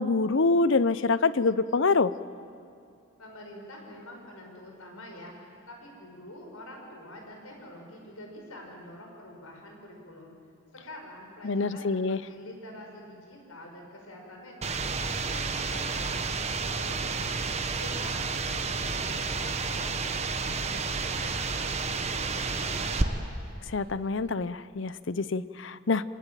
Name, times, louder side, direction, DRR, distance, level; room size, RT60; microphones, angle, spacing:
voice 1, 0.0-2.1 11.4-12.2 23.7-26.0, left 3 dB, 60° left, 16 dB, 0.7 m, -25 dB
voice 2, 3.2-10.3 10.8-16.1 16.6-17.4 17.7-23.3, left 1 dB, 90° left, 1 dB, 5.6 m, -46 dB
sound 1, 14.6-23.0, right 4 dB, 30° right, 1.1 m, -30 dB
25.0 x 20.0 x 9.1 m, 2.5 s
head